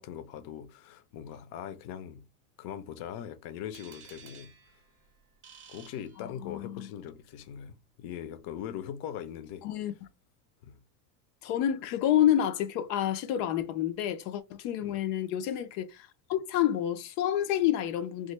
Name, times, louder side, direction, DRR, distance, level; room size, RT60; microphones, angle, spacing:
voice 1, 0.0-2.3 2.6-4.6 5.7-9.7 10.6-10.8 14.8-15.0, left 9 dB, 55° left, 0.6 m, -41 dB
sound 1, 3.7-6.7, right 6 dB, 25° right, 0.7 m, -54 dB
voice 2, 6.2-6.9 9.6-9.9 11.4-18.3, left 11 dB, 85° left, 0.8 m, -29 dB
3.3 x 2.1 x 3.2 m
cardioid pair, 150°, 47 cm